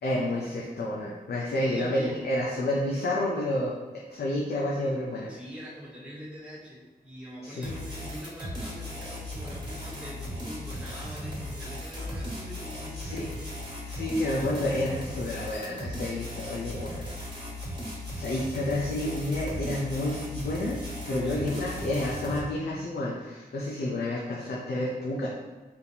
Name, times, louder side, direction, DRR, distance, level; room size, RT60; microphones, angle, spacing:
voice 1, 0.0-5.3 7.4-7.7 12.9-13.3 13.8-17.0 18.1-20.8 21.1-25.3, left 1 dB, 80° left, -4 dB, 0.6 m, -30 dB
voice 2, 1.5-2.2 5.3-13.5 21.1-21.5, equal, 5° right, -6 dB, 1.4 m, -43 dB
sound 1, 7.6-22.4, left 1 dB, 30° right, 1.2 m, -37 dB
4.3 x 3.5 x 2.8 m, 1.3 s
wide cardioid pair, 100°, 16 cm